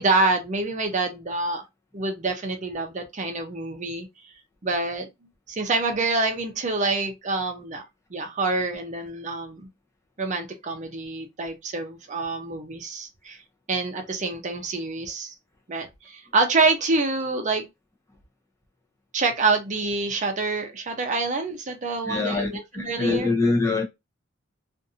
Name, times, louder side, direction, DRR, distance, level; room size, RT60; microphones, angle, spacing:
voice 1, 0.0-1.6 1.9-4.1 4.6-5.1 5.5-7.8 8.1-9.7 10.2-13.4 13.7-15.3 15.7-17.6 19.1-23.3, right 3 dB, 40° right, 0.6 m, -26 dB
voice 2, 22.0-23.8, left 3 dB, 15° left, 0.7 m, -24 dB
2.5 x 2.5 x 2.5 m
head